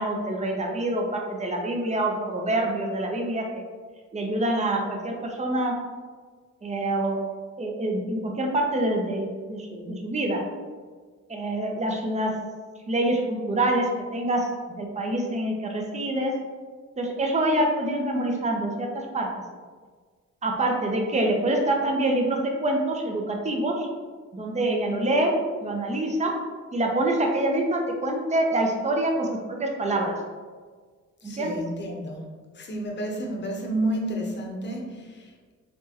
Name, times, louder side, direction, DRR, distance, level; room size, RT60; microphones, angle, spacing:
voice 1, 0.0-3.6 4.1-5.7 6.6-7.2 7.6-10.4 11.3-12.3 12.9-14.5 14.8-16.3 17.0-18.9 19.1-19.3 20.4-23.9 24.3-25.3 25.6-26.3 26.7-30.2 31.2-31.5, right 1 dB, 25° right, 1 dB, 0.7 m, -26 dB
voice 2, 31.2-32.2 32.5-35.5, right 1 dB, 35° left, 0 dB, 0.9 m, -31 dB
4.3 x 3.0 x 2.9 m, 1.5 s
cardioid pair, 90°, 30 cm